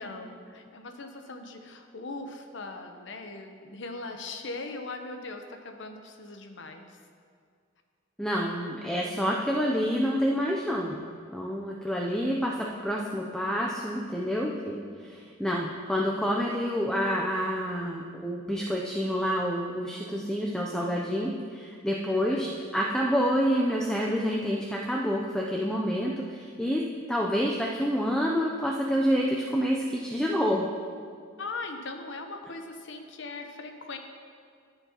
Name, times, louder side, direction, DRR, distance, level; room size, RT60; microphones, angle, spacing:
voice 1, 0.0-7.0 22.1-22.7 31.4-34.0, left 3 dB, 65° left, 5 dB, 0.8 m, -40 dB
voice 2, 8.2-11.0 11.3-22.5 22.7-26.8 27.1-30.7, equal, 5° left, -2 dB, 0.5 m, -28 dB
13.5 x 6.9 x 2.9 m, 2.2 s
head